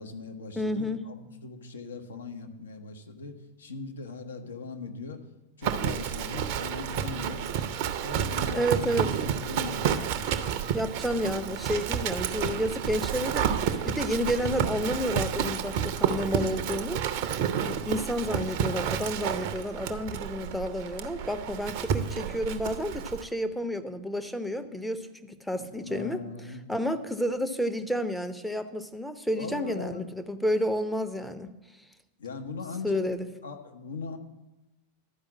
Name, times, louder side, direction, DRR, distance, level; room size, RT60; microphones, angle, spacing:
voice 1, 0.0-5.2 5.6-7.7 8.0-9.9 17.5-17.9 25.6-26.7 29.3-30.1 32.2-33.0 33.4-34.2, left 4 dB, 70° left, 5 dB, 0.9 m, -40 dB
voice 2, 0.6-1.1 8.5-9.1 10.7-13.5 13.9-17.0 17.6-26.2 26.7-31.5 32.8-33.3, equal, ahead, 9 dB, 0.6 m, -30 dB
Livestock farm animals working animals, 5.6-23.2, right 8 dB, 45° right, 0.6 m, -30 dB
12.0 x 5.0 x 7.2 m, 1.0 s
figure-of-eight pair, 90°, 0 cm